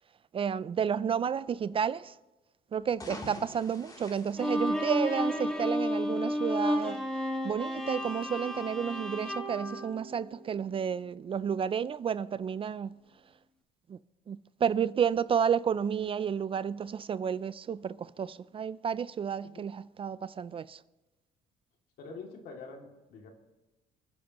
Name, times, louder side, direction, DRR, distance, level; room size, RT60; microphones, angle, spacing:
voice 1, 0.3-2.2 2.7-7.0 7.4-13.0 13.9-14.0 14.3-20.8, right 7 dB, 30° right, 0.4 m, -31 dB
sound 1, 2.8-5.4, left 1 dB, 20° left, 3.0 m, -46 dB
Bowed string instrument, 4.4-10.6, equal, 5° left, 1.7 m, -32 dB
voice 2, 22.0-23.3, left 4 dB, 70° left, 2.5 m, -46 dB
28.5 x 10.5 x 3.0 m
cardioid pair, 110°, 17 cm